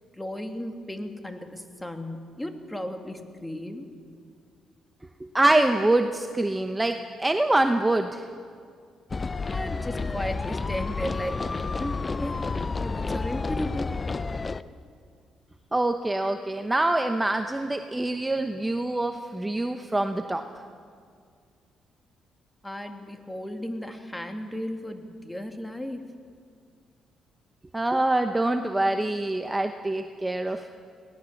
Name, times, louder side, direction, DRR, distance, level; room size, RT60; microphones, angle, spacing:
voice 1, 0.1-3.9 9.5-11.5 11.8-12.4 12.8-13.9 22.6-26.0, left 1 dB, 10° left, 5 dB, 2.2 m, -35 dB
voice 2, 5.2-8.3 15.7-20.5 27.7-30.7, right 2 dB, 15° right, 6 dB, 0.9 m, -25 dB
sound 1, 9.1-14.6, left 4 dB, 30° left, 0.6 m, -30 dB
22.0 x 18.0 x 7.2 m, 2.2 s
cardioid pair, 90°, 0 cm